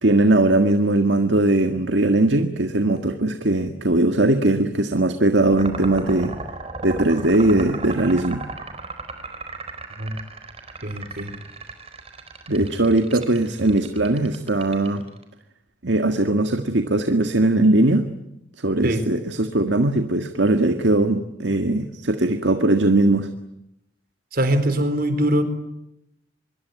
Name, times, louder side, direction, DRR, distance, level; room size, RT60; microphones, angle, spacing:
voice 1, 0.0-6.3 6.8-8.4 12.5-15.0 15.8-18.0 18.6-23.3, right 2 dB, 80° right, 7 dB, 1.7 m, -20 dB
sound 1, 5.5-15.2, right 3 dB, 35° right, 4.2 m, -35 dB
voice 2, 10.8-11.3 18.8-19.1 24.3-25.4, right 1 dB, 55° right, 10 dB, 4.1 m, -22 dB
25.5 x 23.0 x 9.3 m, 0.83 s
head